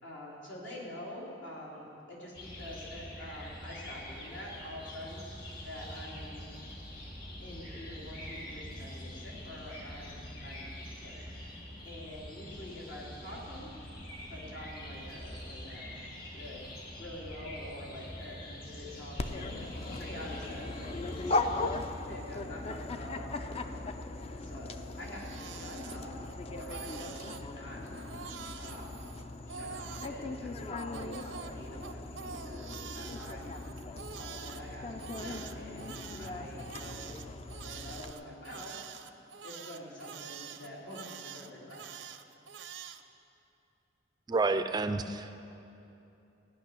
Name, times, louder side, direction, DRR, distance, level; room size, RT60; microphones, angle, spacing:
voice 1, 0.0-5.2 5.6-6.4 7.4-10.7 11.0-11.1 11.8-13.7 14.3-16.0 16.3-16.7 16.9-21.7 22.1-23.5 24.3-26.1 26.5-27.9 28.6-29.2 29.4-33.6 34.2-37.2 37.6-38.9 39.4-42.1, left 1 dB, 80° left, -5 dB, 3.4 m, -46 dB
sound 1, 2.3-21.8, equal, 55° left, 3.0 m, -45 dB
Dog, 19.2-38.1, left 2 dB, 35° left, 0.5 m, -39 dB
Crying sobbing, 24.9-26.3 26.6-27.4 27.9-30.2 30.8-34.6 35.0-43.0, right 7 dB, 80° right, 0.6 m, -46 dB
voice 2, 44.3-45.4, right 3 dB, 20° right, 9 dB, 0.4 m, -29 dB
16.0 x 6.2 x 9.9 m, 2.8 s
head